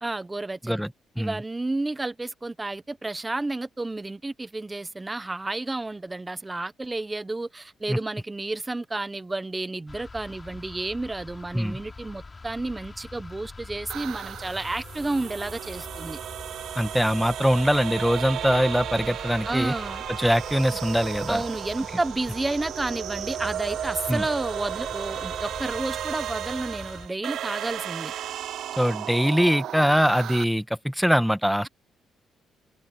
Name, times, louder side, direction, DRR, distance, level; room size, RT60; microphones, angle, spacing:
voice 1, 0.0-0.8 1.2-16.2 19.5-20.0 21.3-28.1, right 2 dB, 15° right, 1.0 m, -31 dB
sound 1, 9.9-27.1, left 3 dB, 25° left, 4.5 m, -43 dB
sound 2, 13.9-30.4, right 10 dB, 75° right, 0.6 m, -34 dB
voice 2, 16.7-19.7 20.2-21.4 24.1-24.2 28.8-31.7, equal, ahead, 1.2 m, -22 dB
cardioid pair, 105°, 0 cm